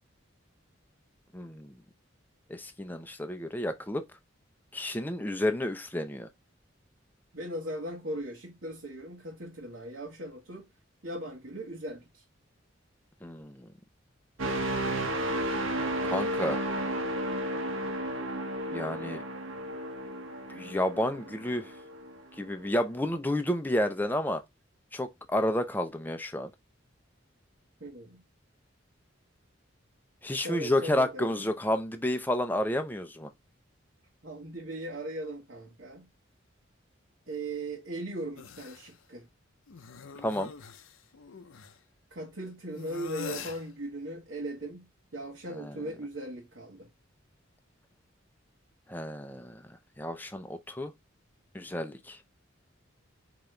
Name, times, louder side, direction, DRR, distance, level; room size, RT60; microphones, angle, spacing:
voice 1, 1.3-1.7 2.5-4.0 4.7-6.3 13.2-13.7 16.0-16.7 18.7-19.2 20.5-21.7 22.4-24.4 24.9-26.5 30.2-33.3 40.2-40.5 45.6-45.8 48.9-49.6 50.0-50.9 51.5-52.2, left 1 dB, 10° left, 0.5 m, -30 dB
voice 2, 7.3-10.7 11.0-12.2 27.8-28.2 30.4-31.5 34.2-36.1 37.3-39.3 42.1-46.9, right 1 dB, 65° right, 1.4 m, -39 dB
sound 1, 14.4-22.2 22.7-22.9, right 1 dB, 85° right, 1.2 m, -33 dB
sound 2, 38.4-38.9 39.7-41.8 42.8-43.6, left 6 dB, 85° left, 0.6 m, -43 dB
5.2 x 3.0 x 3.2 m
head